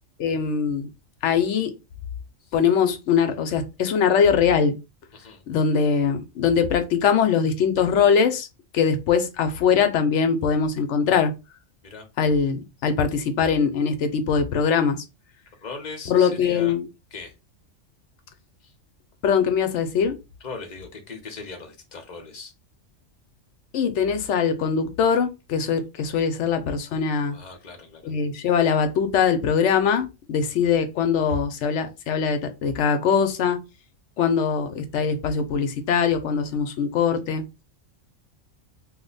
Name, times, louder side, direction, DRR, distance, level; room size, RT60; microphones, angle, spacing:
voice 1, 0.2-0.9 1.2-1.7 2.5-4.7 5.5-8.5 8.7-11.3 12.2-15.0 16.1-16.9 19.2-20.1 23.7-27.4 28.0-33.6 34.2-37.4, left 6 dB, 70° left, 0.9 m, -22 dB
voice 2, 5.1-5.4 11.8-12.1 15.6-16.7 17.1-17.3 18.6-18.7 20.4-22.5 27.3-28.1 30.4-30.5, left 4 dB, 40° left, 0.8 m, -39 dB
2.8 x 2.1 x 3.8 m
omnidirectional pair, 1.3 m